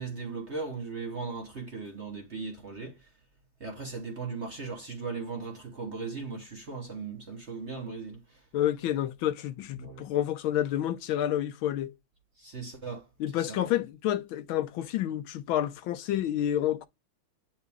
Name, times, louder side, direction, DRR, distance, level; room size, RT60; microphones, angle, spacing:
voice 1, 0.0-2.9 3.6-8.2 9.8-10.0 12.4-13.0 13.3-13.6, right 4 dB, 45° right, 1.0 m, -38 dB
voice 2, 8.5-11.9 13.2-16.9, left 11 dB, 75° left, 1.3 m, -29 dB
8.9 x 3.0 x 3.5 m
omnidirectional pair, 2.4 m